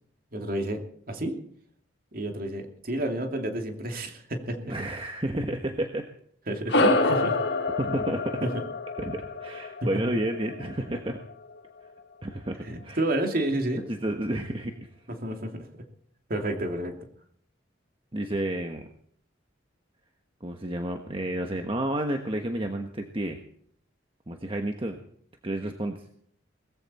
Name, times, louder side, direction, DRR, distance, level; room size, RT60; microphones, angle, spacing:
voice 1, 0.3-1.4 2.1-4.7 6.5-7.4 8.4-8.6 12.7-13.8 15.1-15.8 16.3-17.0, right 1 dB, 50° right, 4 dB, 2.6 m, -30 dB
voice 2, 4.7-6.1 7.8-8.5 9.0-11.2 12.2-13.0 13.9-14.7 18.1-18.9 20.4-23.4 24.3-25.0 25.4-26.2, right 1 dB, 30° right, 4 dB, 1.3 m, -31 dB
sound 1, 6.7-11.5, left 2 dB, 60° left, 1.9 m, -27 dB
20.0 x 15.0 x 4.3 m, 0.63 s
head